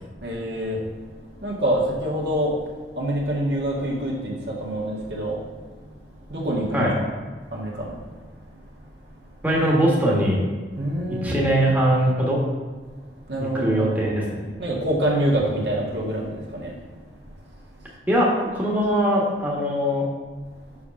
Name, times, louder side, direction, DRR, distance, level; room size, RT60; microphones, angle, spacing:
voice 1, 0.2-0.8 1.4-2.6 2.9-5.5 6.3-7.1 7.5-8.2 8.5-8.6 10.8-11.5 13.3-14.3 14.6-16.7 17.1-17.2, right 1 dB, 70° right, -3 dB, 1.9 m, -26 dB
voice 2, 9.4-10.4 11.1-12.4 13.5-14.4 18.1-20.1, equal, 10° right, -4 dB, 1.4 m, -21 dB
5.8 x 5.8 x 5.2 m, 1.4 s
head